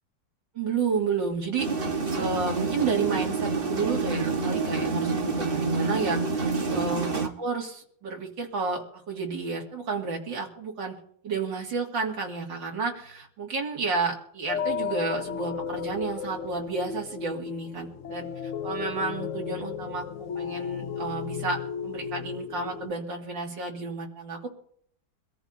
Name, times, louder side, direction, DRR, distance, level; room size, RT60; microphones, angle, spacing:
voice 1, 0.5-1.7 2.1-11.0 11.2-24.5, right 4 dB, 80° right, 0 dB, 3.1 m, -31 dB
sound 1, 1.6-7.3, right 4 dB, 35° right, 1.4 m, -28 dB
sound 2, 14.5-22.9, left 7 dB, 60° left, 0.8 m, -34 dB
24.0 x 14.0 x 2.7 m, 0.63 s
omnidirectional pair, 2.0 m